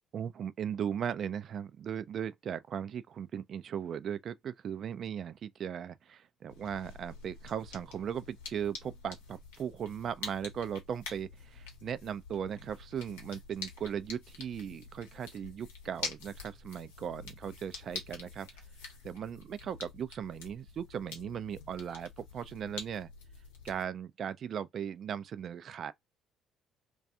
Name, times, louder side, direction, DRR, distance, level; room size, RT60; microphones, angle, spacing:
voice 1, 0.1-18.5 19.0-23.1 23.6-25.9, right 8 dB, 55° right, 0.3 m, -38 dB
sound 1, 6.5-23.8, left 4 dB, 80° left, 0.7 m, -47 dB
2.3 x 2.2 x 2.7 m
hypercardioid pair, 55°, 0 cm